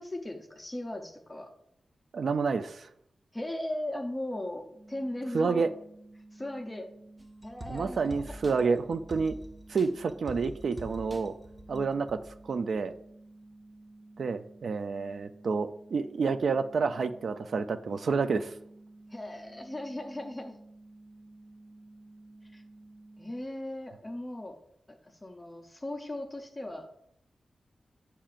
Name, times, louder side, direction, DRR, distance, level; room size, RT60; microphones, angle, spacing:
voice 1, 0.0-1.5 3.3-5.6 6.3-6.9 7.4-8.3 11.7-11.9 19.1-20.6 22.5-22.6 23.2-24.6 24.9-26.9, left 1 dB, 15° left, 4 dB, 0.6 m, -38 dB
voice 2, 2.1-2.9 5.3-5.7 7.7-9.4 9.7-11.3 11.7-12.9 14.2-18.5, right 5 dB, 70° right, 11 dB, 0.3 m, -29 dB
sound 1, 4.7-23.4, right 2 dB, 50° right, 0.8 m, -53 dB
sound 2, 7.2-12.4 12.7-12.8, right 1 dB, 20° right, 0.8 m, -46 dB
8.7 x 5.6 x 2.5 m, 0.72 s
wide cardioid pair, 135°, 0 cm